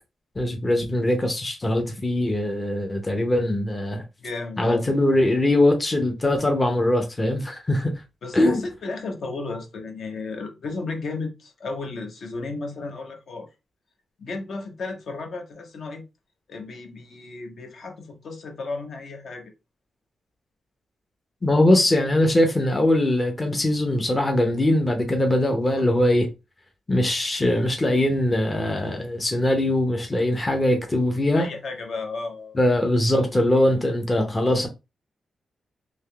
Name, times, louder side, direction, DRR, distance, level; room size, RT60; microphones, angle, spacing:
voice 1, 0.4-4.0 4.6-8.0 8.3-8.6 21.4-26.3 26.9-31.5 32.6-34.7, left 1 dB, 20° left, 0.6 m, -21 dB
voice 2, 4.2-4.9 8.2-13.5 14.2-16.0 16.5-19.5 31.3-32.6, left 3 dB, 60° left, 0.8 m, -34 dB
3.3 x 2.8 x 2.3 m
wide cardioid pair, 130°, 0 cm